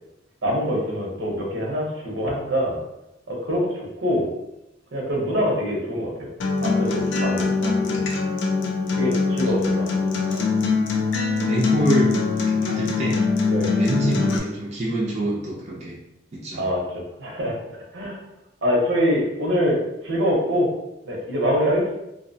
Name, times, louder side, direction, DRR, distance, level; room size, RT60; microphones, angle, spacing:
voice 1, 0.4-2.8 3.3-4.3 4.9-6.3 6.6-8.0 8.9-9.9 13.5-13.7 16.6-18.2 18.6-20.7 21.0-21.9, equal, 75° right, -2 dB, 0.7 m, -24 dB
Acoustic guitar, 6.4-14.4, left 4 dB, 75° left, 0.4 m, -22 dB
voice 2, 11.5-13.3 13.8-16.0 16.3-16.6, right 1 dB, 35° right, -5 dB, 0.5 m, -26 dB
2.7 x 2.0 x 2.7 m, 0.89 s
head